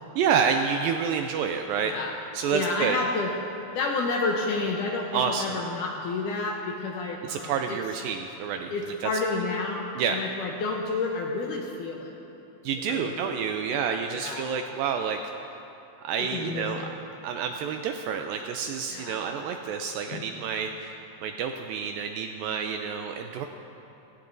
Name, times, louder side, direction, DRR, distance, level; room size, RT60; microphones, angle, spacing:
voice 1, 0.2-1.9 2.3-3.0 5.1-5.6 7.2-8.7 9.0-9.1 10.0-10.2 12.6-15.2 16.0-16.9 17.2-23.5, right 6 dB, 80° right, 5 dB, 2.1 m, -29 dB
voice 2, 2.5-3.3 3.7-7.8 8.7-12.1 12.9-13.5 14.1-14.5 16.3-16.9 18.9-19.2 20.1-20.3, left 3 dB, 75° left, 0 dB, 2.0 m, -30 dB
17.5 x 16.0 x 2.6 m, 3.0 s
omnidirectional pair, 4.5 m